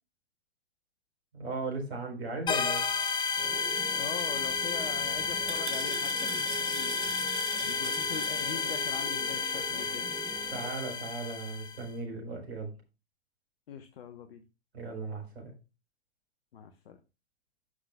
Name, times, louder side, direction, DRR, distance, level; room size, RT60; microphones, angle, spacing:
voice 1, 1.3-2.8 10.5-12.7 14.7-15.5, right 3 dB, 70° right, 3 dB, 4.5 m, -37 dB
sound 1, 2.5-11.8, left 5 dB, 15° left, 0.9 m, -32 dB
sound 2, 3.4-10.7, right 4 dB, 15° right, 3.2 m, -44 dB
voice 2, 4.0-7.0 7.6-10.1 13.7-14.4 16.5-17.0, left 7 dB, 60° left, 8 dB, 1.1 m, -42 dB
sound 3, 4.4-8.9, right 9 dB, 35° right, 1.6 m, -43 dB
16.0 x 5.7 x 2.3 m, 0.29 s
figure-of-eight pair, 100°, 33 cm